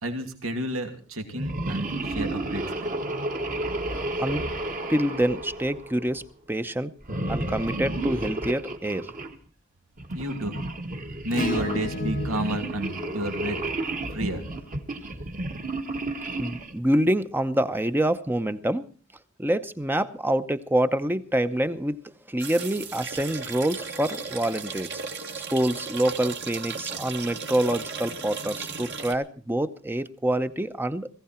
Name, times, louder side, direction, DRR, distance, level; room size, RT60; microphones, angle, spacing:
voice 1, 0.0-2.9 10.1-10.7 11.2-13.6 14.1-14.4, right 1 dB, 85° right, 5 dB, 2.6 m, -31 dB
sound 1, 1.3-6.2 7.0-9.3 10.0-16.8, right 2 dB, 40° right, 1.6 m, -31 dB
voice 2, 4.9-6.2 6.5-6.9 7.3-9.1 16.4-18.9 19.4-22.0 22.3-24.9 25.3-31.1, right 1 dB, 10° right, 11 dB, 0.8 m, -26 dB
Acoustic guitar / Strum, 11.3-15.9 17.8-17.9, left 3 dB, 45° left, 0.9 m, -37 dB
sound 2, 22.4-29.1, right 5 dB, 55° right, 2.2 m, -36 dB
19.0 x 16.0 x 4.4 m, 0.38 s
head